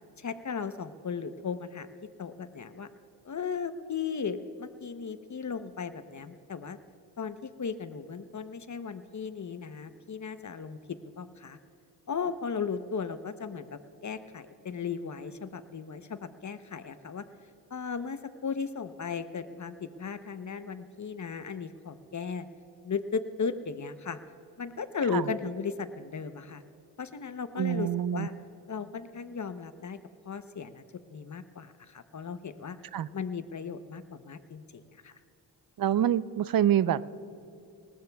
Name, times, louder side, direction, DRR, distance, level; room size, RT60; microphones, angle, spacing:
voice 1, 0.2-1.9 2.2-2.9 3.2-6.8 7.2-11.6 12.1-17.2 17.7-22.5 22.8-24.2 24.6-26.6 27.0-28.3 28.7-30.0 30.3-30.8 31.1-32.8 33.1-35.1, left 6 dB, 40° left, 11 dB, 0.9 m, -36 dB
voice 2, 27.6-28.3 32.9-33.1 35.8-37.1, right 10 dB, 50° right, 17 dB, 0.7 m, -26 dB
26.5 x 14.0 x 2.3 m, 2.6 s
supercardioid pair, 50°, 46 cm